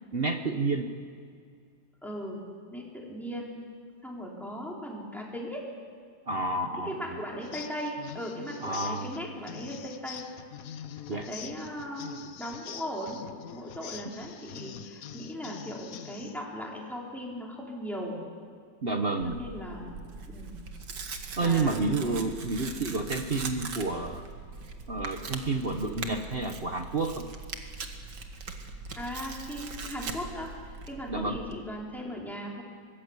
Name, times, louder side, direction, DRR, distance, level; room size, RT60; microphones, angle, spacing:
voice 1, 0.1-0.9 6.3-7.2 8.6-9.1 11.1-11.3 18.8-19.4 21.4-24.2 24.9-27.3 31.1-31.4, right 3 dB, 35° right, 6 dB, 1.1 m, -30 dB
voice 2, 2.0-2.4 2.7-3.6 4.0-5.6 6.8-10.2 11.1-13.2 13.5-18.2 19.2-20.0 20.3-20.5 21.4-21.8 29.0-32.6, equal, ahead, -3 dB, 4.5 m, -38 dB
sound 1, 7.4-16.4, left 9 dB, 55° left, 1.1 m, -45 dB
Tearing, 19.2-31.6, right 4 dB, 65° right, 2.3 m, -41 dB
24.0 x 19.5 x 8.3 m, 2.2 s
omnidirectional pair, 2.0 m